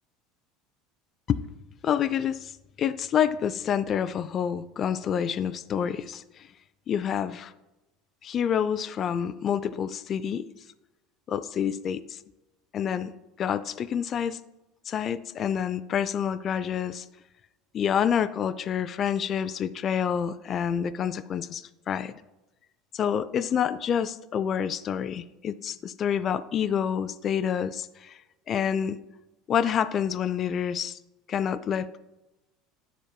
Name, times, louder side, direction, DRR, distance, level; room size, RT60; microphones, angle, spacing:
voice 1, 1.8-2.5 2.8-6.5 6.9-7.5 8.2-10.5 11.3-12.2 12.7-13.1 13.4-14.4 14.9-17.0 17.7-22.1 22.9-28.2 28.5-29.0 29.5-31.0 31.3-32.0, left 8 dB, 45° left, 12 dB, 0.4 m, -28 dB
12.5 x 4.4 x 2.2 m, 0.98 s
hypercardioid pair, 85°, 0 cm